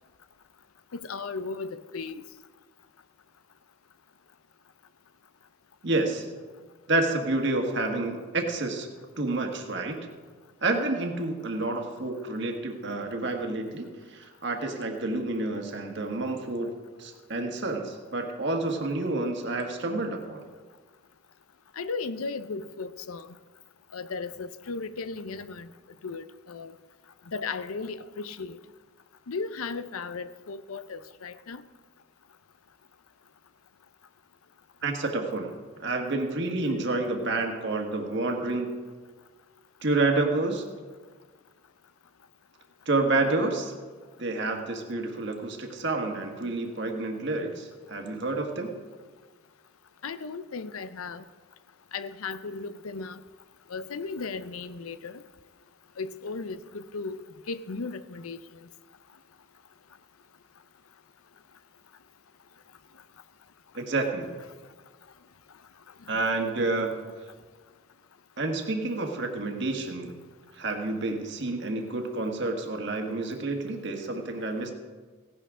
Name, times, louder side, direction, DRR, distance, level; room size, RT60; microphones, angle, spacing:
voice 1, 0.9-2.2 21.8-23.4 23.9-25.7 26.0-26.7 27.3-28.6 29.3-31.6 50.0-51.2 51.9-53.2 53.7-55.2 56.0-57.2 57.5-58.4, left 4 dB, 85° left, 14 dB, 0.6 m, -36 dB
voice 2, 5.8-6.3 6.9-8.9 9.2-10.0 10.6-16.7 17.0-20.4 34.8-35.5 35.8-38.8 39.8-40.6 42.8-43.7 44.2-48.7 63.7-64.3 66.1-67.1 68.4-70.2 70.5-74.7, right 2 dB, 55° right, 3 dB, 1.5 m, -29 dB
17.0 x 11.0 x 3.7 m, 1.4 s
head